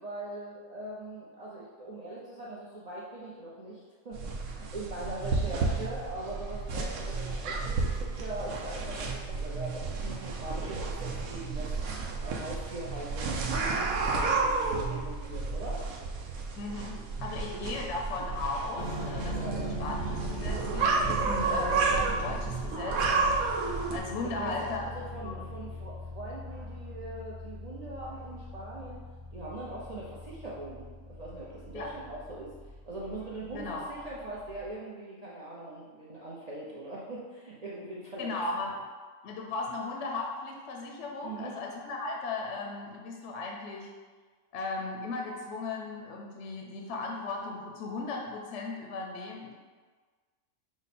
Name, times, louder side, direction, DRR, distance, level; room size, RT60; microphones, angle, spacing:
voice 1, 0.0-11.7 12.2-13.5 14.0-15.8 18.8-19.7 24.2-29.0 29.3-32.5 32.9-38.3 41.2-41.6, right 2 dB, 65° right, -7 dB, 0.4 m, -41 dB
sound 1, 4.1-24.0, right 4 dB, 80° right, 1.1 m, -31 dB
voice 2, 16.6-24.8 25.2-25.5 31.7-31.9 33.5-33.9 38.2-38.8 39.2-43.9 44.5-49.5, left 3 dB, 65° left, 1 dB, 0.7 m, -37 dB
sound 2, 18.8-34.7, equal, 40° right, 0.8 m, -41 dB
6.0 x 2.1 x 4.1 m, 1.5 s
omnidirectional pair, 1.5 m